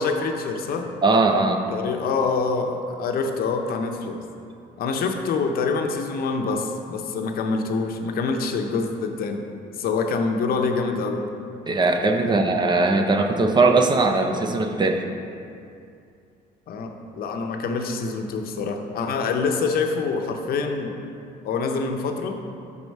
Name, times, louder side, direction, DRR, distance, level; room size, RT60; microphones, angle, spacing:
voice 1, 0.0-0.9 1.7-4.2 4.8-9.4 9.8-11.3 12.2-12.5 16.7-21.0 21.4-22.4, left 4 dB, 60° left, 4 dB, 0.6 m, -26 dB
voice 2, 1.0-1.6 11.7-15.1, right 3 dB, 25° right, 4 dB, 0.5 m, -20 dB
5.4 x 4.6 x 5.4 m, 2.5 s
cardioid pair, 110°, 17 cm